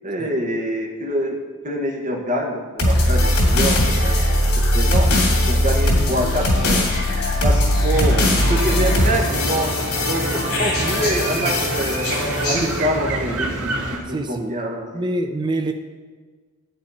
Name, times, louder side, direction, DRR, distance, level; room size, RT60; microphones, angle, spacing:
voice 1, 0.0-1.4 1.6-4.2 4.5-5.1 5.5-6.8 7.4-9.7 10.0-12.1 12.5-15.0, equal, 35° right, 0 dB, 1.5 m, -25 dB
sound 1, 2.8-12.8, left 1 dB, 75° left, 2.5 m, -19 dB
sound 2, 7.9-14.0, right 2 dB, 75° right, 2.2 m, -27 dB
voice 2, 12.6-13.0 14.1-14.5 14.9-15.7, right 2 dB, 20° right, 5 dB, 0.5 m, -26 dB
11.5 x 8.6 x 4.2 m, 1.5 s
head